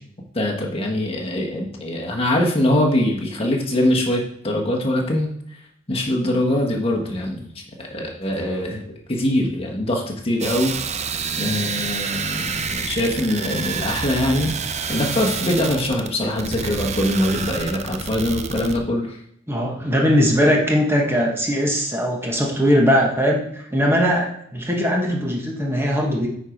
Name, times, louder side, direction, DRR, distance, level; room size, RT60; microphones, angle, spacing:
voice 1, 0.3-5.3 5.9-10.7 11.4-14.5 14.9-19.2, left 1 dB, 30° left, 0 dB, 1.4 m, -23 dB
sound 1, 10.4-18.8, right 5 dB, 35° right, 0.6 m, -28 dB
voice 2, 19.5-26.3, equal, 10° right, -1 dB, 1.2 m, -20 dB
9.0 x 4.6 x 5.2 m, 0.70 s
head